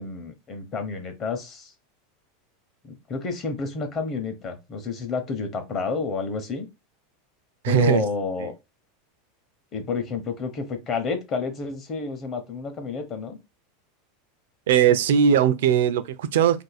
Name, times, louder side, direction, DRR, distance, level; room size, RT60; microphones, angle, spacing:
voice 1, 0.0-1.7 2.8-6.7 7.7-8.5 9.7-13.4, left 4 dB, 30° left, 0.8 m, -30 dB
voice 2, 7.6-8.0 14.7-16.6, right 9 dB, 80° right, 0.4 m, -19 dB
2.6 x 2.4 x 4.0 m
supercardioid pair, 145°, 0 cm